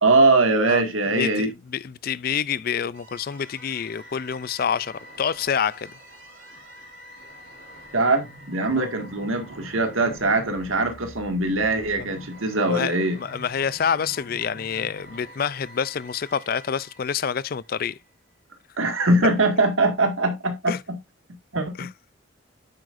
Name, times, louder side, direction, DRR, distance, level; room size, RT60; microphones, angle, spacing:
voice 1, 0.0-1.5 7.9-13.2 18.8-21.0 21.5-21.9, right 2 dB, 90° right, 2.0 m, -22 dB
voice 2, 1.2-5.9 8.7-8.9 12.7-18.0 20.7-20.8 21.8-21.9, left 7 dB, 45° left, 0.4 m, -27 dB
sound 1, 2.9-18.1, equal, 60° right, 4.3 m, -45 dB
9.7 x 7.7 x 2.6 m
head